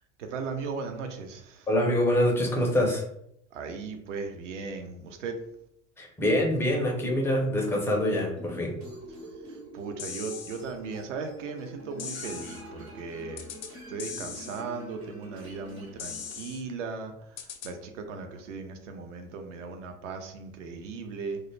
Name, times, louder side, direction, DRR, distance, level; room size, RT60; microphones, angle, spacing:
voice 1, 0.2-1.7 3.5-5.4 9.7-13.4 13.9-17.1 17.6-21.4, right 4 dB, 65° right, 6 dB, 0.6 m, -37 dB
voice 2, 1.7-3.0 6.0-8.8, left 1 dB, 5° left, 0 dB, 0.4 m, -25 dB
sound 1, 7.6-16.4, right 1 dB, 90° right, 1.1 m, -45 dB
sound 2, 10.0-10.6 12.0-12.6 13.4-13.7 14.0-14.6 16.0-16.6 17.4-17.7, left 7 dB, 60° left, 0.5 m, -39 dB
2.3 x 2.0 x 3.1 m, 0.73 s
figure-of-eight pair, 75°, 41 cm